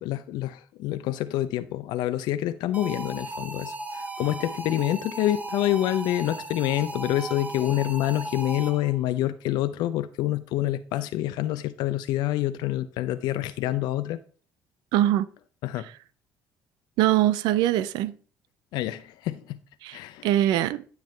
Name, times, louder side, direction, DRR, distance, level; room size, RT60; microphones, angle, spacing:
voice 1, 0.0-14.2 15.6-15.9 18.7-19.6 19.9-20.3, left 14 dB, 75° left, 0.5 m, -27 dB
sound 1, 2.7-9.0, right 2 dB, 20° right, 1.8 m, -36 dB
voice 2, 14.9-15.3 17.0-18.2 19.8-20.8, right 13 dB, 75° right, 0.6 m, -23 dB
9.4 x 7.3 x 3.3 m
supercardioid pair, 70°, 7 cm